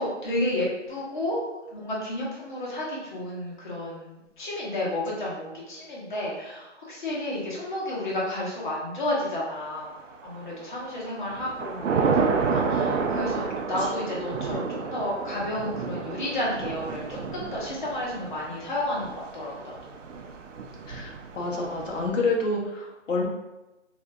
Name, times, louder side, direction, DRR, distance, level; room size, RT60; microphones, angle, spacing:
voice 1, 0.0-1.4 1.7-9.9 10.2-19.9, left 1 dB, 40° left, -5 dB, 1.0 m, -31 dB
Thunder / Rain, 10.0-10.5 11.0-22.1, right 5 dB, 90° right, 0.5 m, -30 dB
voice 2, 20.9-23.3, left 3 dB, 80° left, -2 dB, 0.9 m, -28 dB
3.6 x 2.6 x 2.3 m, 0.99 s
hypercardioid pair, 165°, 37 cm